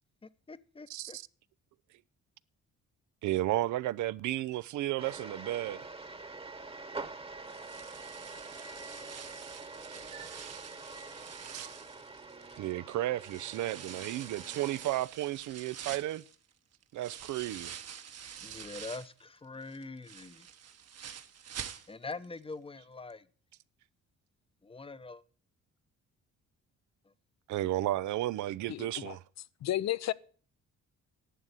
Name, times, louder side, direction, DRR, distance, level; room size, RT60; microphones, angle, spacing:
voice 1, 0.2-1.2 10.3-10.4 18.4-20.5 21.9-23.3 24.6-25.2, left 3 dB, 20° left, 0.8 m, -44 dB
voice 2, 0.9-1.2 3.2-5.9 11.5-11.7 12.6-16.2 16.9-17.7 18.4-18.6 27.5-29.2, right 15 dB, 75° right, 0.5 m, -33 dB
sound 1, 5.0-15.1, right 3 dB, 20° right, 1.2 m, -46 dB
sound 2, 7.4-12.7 13.2-19.2 19.6-22.2 22.5-22.6 23.1-23.2, right 8 dB, 55° right, 1.2 m, -47 dB
voice 3, 28.7-29.2 29.6-30.1, left 13 dB, 60° left, 0.6 m, -32 dB
11.5 x 7.8 x 8.1 m
cardioid pair, 90°, 30 cm